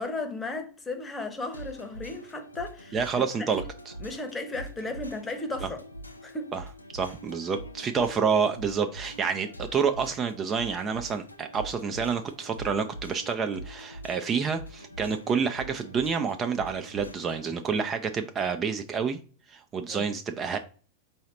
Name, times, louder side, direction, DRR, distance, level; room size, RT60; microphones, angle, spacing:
voice 1, 0.0-3.0 3.4-3.6 4.0-5.8 6.2-6.5 19.8-20.1, left 2 dB, 15° left, 0.8 m, -35 dB
sound 1, 1.5-17.5, right 1 dB, 80° left, 0.5 m, -44 dB
voice 2, 2.9-3.9 5.6-5.7 6.5-6.6 6.9-19.2 19.5-20.6, right 6 dB, 25° right, 0.4 m, -28 dB
4.6 x 2.7 x 3.1 m
figure-of-eight pair, 90°, 0 cm